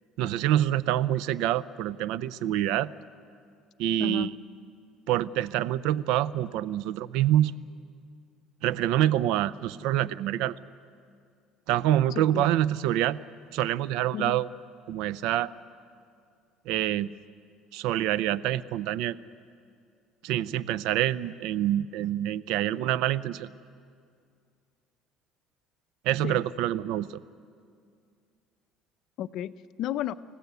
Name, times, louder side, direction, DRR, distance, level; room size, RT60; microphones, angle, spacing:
voice 1, 0.2-2.9 3.8-4.3 5.1-7.5 8.6-10.5 11.7-13.2 13.5-14.5 14.9-15.5 16.7-17.1 17.7-19.2 20.2-23.5 26.0-27.2, right 12 dB, 80° right, 18 dB, 0.6 m, -26 dB
voice 2, 4.0-4.3 12.1-12.6 14.1-14.4 26.2-26.4 29.2-30.1, left 11 dB, 60° left, 12 dB, 0.6 m, -33 dB
29.5 x 15.0 x 8.2 m, 2.3 s
cardioid pair, 115°, 0 cm